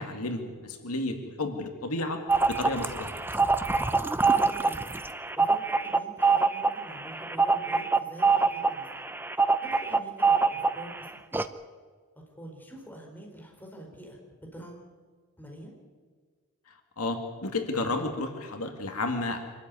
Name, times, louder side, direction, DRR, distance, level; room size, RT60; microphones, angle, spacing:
voice 1, 0.0-2.2 2.5-3.2 17.0-19.4, left 2 dB, 75° left, 5 dB, 2.2 m, -32 dB
sound 1, 2.3-11.0 11.3-11.4, right 4 dB, 10° right, 0.7 m, -24 dB
voice 2, 4.2-4.9 5.1-8.9 9.4-11.2 11.5-11.6 12.4-14.2 14.5-14.9 15.4-15.7, equal, 10° left, 0 dB, 4.4 m, -46 dB
25.5 x 13.5 x 9.7 m, 1.5 s
head